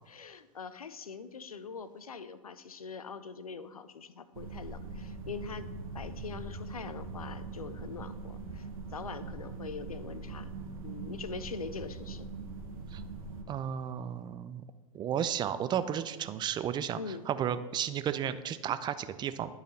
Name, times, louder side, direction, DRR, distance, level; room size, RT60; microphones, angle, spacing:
voice 1, 0.1-5.7 5.9-10.5 10.8-12.3 16.9-17.3, left 5 dB, 90° left, 13 dB, 0.5 m, -43 dB
sound 1, 4.3-13.4, right 4 dB, 75° right, 1.1 m, -42 dB
voice 2, 13.5-14.6 14.9-19.5, right 9 dB, 25° right, 12 dB, 0.4 m, -33 dB
11.0 x 4.1 x 4.1 m, 1.2 s
hypercardioid pair, 90°, 18 cm